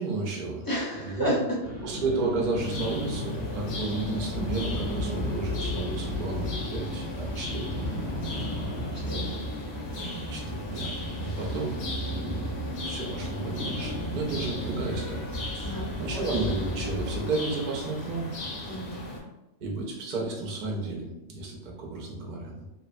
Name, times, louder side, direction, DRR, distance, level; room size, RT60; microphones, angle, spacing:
voice 1, 0.0-0.6 1.0-1.4 1.8-7.9 10.3-15.3 15.5-18.3 19.6-22.6, right 3 dB, 50° right, -2 dB, 0.6 m, -32 dB
voice 2, 0.7-1.4 8.9-9.4 10.0-10.2 15.6-15.9 16.1-16.3 18.7-19.1, equal, 25° left, -5 dB, 0.5 m, -32 dB
sound 1, 1.6-17.2, left 1 dB, 15° right, 0.8 m, -34 dB
sound 2, 2.6-19.2, left 2 dB, 60° left, 0.7 m, -38 dB
2.9 x 2.1 x 2.4 m, 0.97 s
omnidirectional pair, 1.3 m